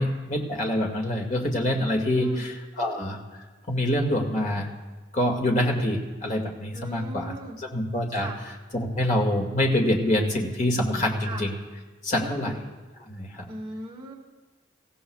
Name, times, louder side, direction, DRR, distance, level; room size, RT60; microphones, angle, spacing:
voice 1, 0.0-3.2 3.7-4.7 5.1-11.6 12.0-12.5 13.1-13.5, left 1 dB, 45° left, 0 dB, 2.1 m, -26 dB
voice 2, 6.7-7.6 8.1-8.4 11.2-11.4 12.2-12.6 13.5-14.1, right 1 dB, 25° right, -3 dB, 1.9 m, -38 dB
26.0 x 15.5 x 2.4 m, 1.3 s
head